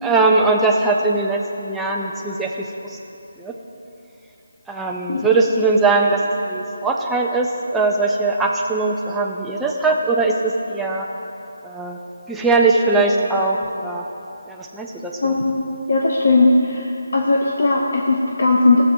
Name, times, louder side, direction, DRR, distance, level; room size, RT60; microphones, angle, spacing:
voice 1, 0.0-3.0 3.4-3.5 4.7-11.1 11.6-12.0 12.3-14.1 14.5-15.3, right 3 dB, 5° right, -1 dB, 0.4 m, -20 dB
voice 2, 15.2-15.6 15.9-16.8 17.1-18.8, left 3 dB, 60° left, 0 dB, 0.7 m, -17 dB
14.5 x 7.3 x 2.6 m, 2.9 s
figure-of-eight pair, 165°, 0 cm